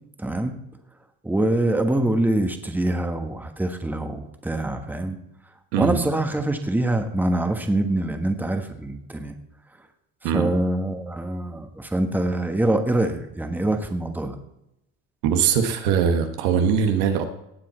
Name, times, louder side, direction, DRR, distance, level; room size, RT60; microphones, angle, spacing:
voice 1, 0.2-0.5 1.2-5.2 5.8-9.3 10.3-14.4, right 1 dB, 5° right, 6 dB, 1.4 m, -24 dB
voice 2, 5.7-6.0 10.2-10.6 15.2-17.2, right 7 dB, 85° right, 6 dB, 1.6 m, -21 dB
18.0 x 7.5 x 4.4 m, 0.84 s
cardioid pair, 120°, 33 cm